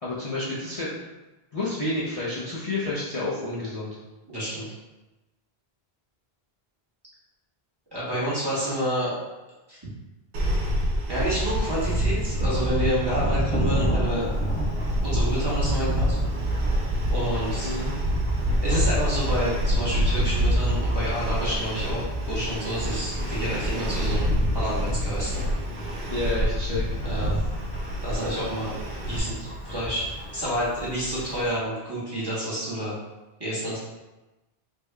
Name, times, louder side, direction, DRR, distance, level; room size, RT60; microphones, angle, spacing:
voice 1, 0.0-1.0 1.5-4.0 17.6-17.9 26.1-26.8, left 2 dB, 40° left, -8 dB, 0.6 m, -30 dB
voice 2, 4.3-4.7 7.9-9.2 9.7-9.8 11.1-14.3 15.0-16.2 17.1-17.7 18.6-25.5 27.0-27.3 28.0-28.7 29.1-32.9 33.4-33.8, equal, 25° right, -8 dB, 1.0 m, -29 dB
sound 1, 10.3-29.2, equal, 80° right, 0.9 m, -26 dB
Thunderstorm / Rain, 13.5-31.6, equal, 10° left, 0.7 m, -35 dB
3.5 x 2.1 x 3.2 m, 1.1 s
omnidirectional pair, 1.1 m